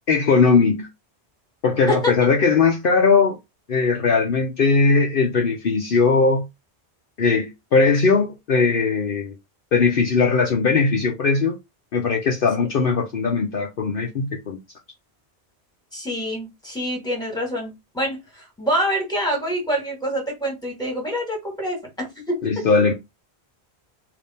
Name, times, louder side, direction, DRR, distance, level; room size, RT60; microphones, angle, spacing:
voice 1, 0.1-0.9 1.6-3.4 3.7-6.4 7.2-9.3 9.7-11.5 11.9-14.6 22.4-22.9, left 4 dB, 60° left, 0.9 m, -19 dB
voice 2, 15.9-22.6, equal, 5° left, 1.7 m, -26 dB
3.5 x 2.9 x 4.1 m
omnidirectional pair, 1.1 m